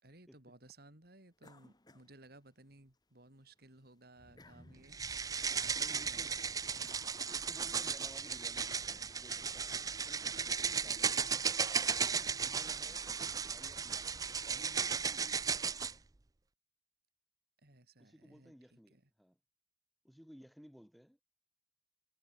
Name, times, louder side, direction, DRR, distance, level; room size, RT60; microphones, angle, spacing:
voice 1, 0.0-5.0 5.6-5.8 6.0-7.0 17.6-19.1, right 2 dB, 55° right, 3.6 m, -60 dB
sound 1, 1.4-2.9 3.3-7.9, left 1 dB, 20° left, 2.0 m, -63 dB
sound 2, 4.9-15.9, right 6 dB, 20° right, 0.5 m, -35 dB
voice 2, 5.7-6.4 7.3-11.3 12.0-16.0 18.0-19.4 20.0-21.2, equal, ahead, 2.7 m, -58 dB
head